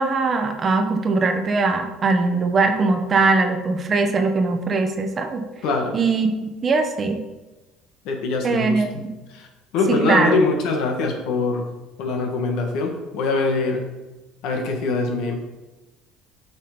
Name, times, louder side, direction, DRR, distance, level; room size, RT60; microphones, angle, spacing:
voice 1, 0.0-5.4 5.9-7.2 8.4-9.1 9.9-10.4, right 3 dB, 30° right, 6 dB, 0.9 m, -21 dB
voice 2, 5.6-6.0 8.1-9.0 9.3-9.5 9.7-11.6 12.0-13.9 14.4-15.4, left 3 dB, 75° left, 3 dB, 1.7 m, -23 dB
6.9 x 5.9 x 5.3 m, 1.1 s
cardioid pair, 135°, 0 cm